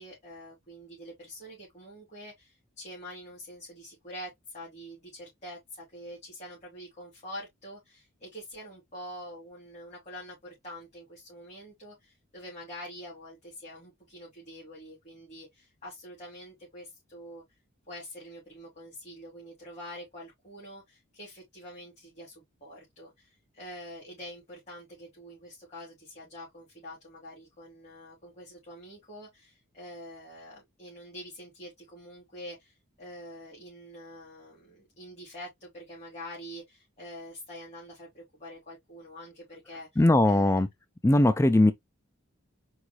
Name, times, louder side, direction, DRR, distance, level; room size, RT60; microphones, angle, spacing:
voice 1, 0.0-17.4 17.9-40.6, equal, 35° left, 2.8 m, -46 dB
voice 2, 40.0-40.7 41.0-41.7, left 1 dB, 15° left, 0.3 m, -20 dB
4.7 x 3.9 x 2.3 m
head